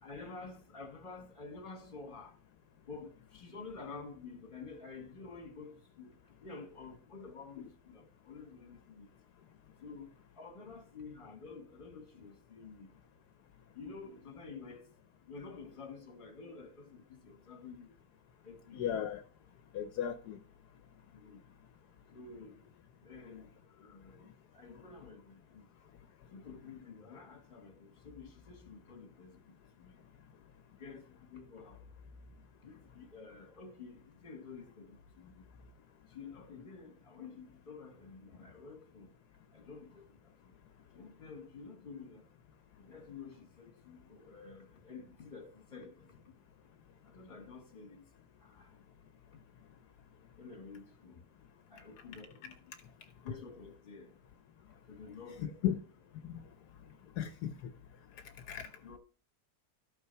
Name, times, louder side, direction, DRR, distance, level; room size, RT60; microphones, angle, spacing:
voice 1, 0.0-2.3 2.9-6.1 6.4-9.1 9.8-10.1 10.4-12.9 13.7-14.9 15.3-17.9 18.4-18.8 21.1-21.4 22.1-22.6 23.0-23.5 23.8-24.3 24.5-25.6 26.3-29.3 29.8-29.9 30.8-31.8 32.6-35.3 36.1-39.1 39.5-40.0 40.9-42.2 42.8-46.3 47.1-48.0 48.6-48.7 50.4-51.2 51.7-52.6 53.2-54.1 54.9-55.6 58.8-59.0, left 4 dB, 30° left, 1.7 m, -50 dB
voice 2, 18.7-19.2 19.7-20.4 55.6-55.8 56.2-56.4 57.2-57.7 58.5-58.7, left 10 dB, 75° left, 1.2 m, -35 dB
12.5 x 5.7 x 4.5 m
omnidirectional pair, 1.7 m